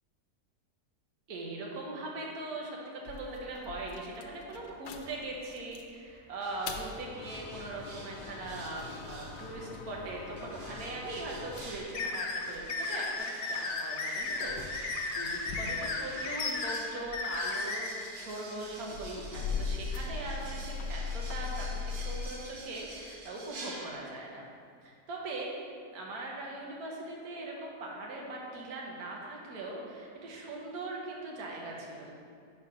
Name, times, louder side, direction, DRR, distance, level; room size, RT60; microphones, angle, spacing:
voice 1, 1.3-24.4 24.8-25.5 25.9-32.1, right 2 dB, 65° right, -2 dB, 1.5 m, -40 dB
sound 1, 3.1-5.9 6.4-13.2 13.9-16.6 16.9-22.3, left 5 dB, 90° left, 1.2 m, -40 dB
sound 2, 6.4-9.6 10.4-24.4, right 2 dB, 45° right, 0.7 m, -49 dB
sound 3, 11.9-17.9, left 3 dB, 65° left, 1.0 m, -34 dB
5.5 x 4.8 x 4.8 m, 2.3 s
omnidirectional pair, 1.7 m